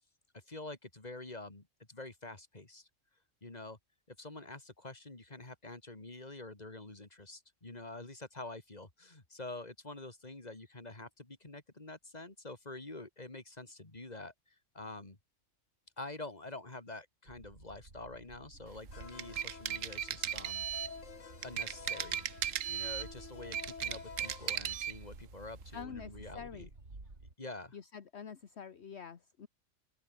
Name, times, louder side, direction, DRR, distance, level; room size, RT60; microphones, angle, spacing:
voice 1, 0.3-2.9 3.4-3.8 4.1-15.2 16.0-20.7 21.4-22.2 22.7-26.7 27.4-27.8, left 2 dB, 35° left, 3.1 m, -47 dB
sound 1, 17.3-27.3, right 2 dB, 60° right, 4.2 m, -53 dB
sound 2, 18.9-24.5, left 6 dB, 80° left, 2.0 m, -50 dB
sound 3, 19.0-21.0 21.4-23.1 23.4-25.0, right 9 dB, 85° right, 1.3 m, -36 dB
voice 2, 25.7-26.7 27.7-29.5, left 7 dB, 60° left, 1.5 m, -47 dB
open air
omnidirectional pair, 1.3 m